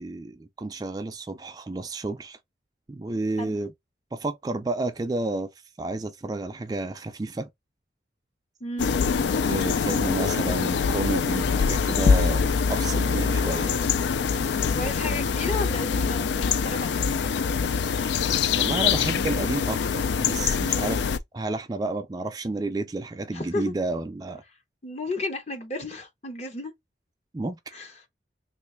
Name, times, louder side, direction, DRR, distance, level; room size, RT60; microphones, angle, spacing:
voice 1, 0.0-2.4 2.9-3.7 4.1-5.5 5.8-7.5 9.5-12.4 12.7-13.8 18.5-24.4 27.3-27.6, right 2 dB, 20° right, 0.3 m, -31 dB
voice 2, 8.6-8.9 14.7-17.0 23.3-23.7 24.8-26.7 27.7-28.0, left 2 dB, 35° left, 0.8 m, -33 dB
sound 1, 8.8-21.2, left 6 dB, 75° left, 0.3 m, -24 dB
3.1 x 2.5 x 3.2 m
head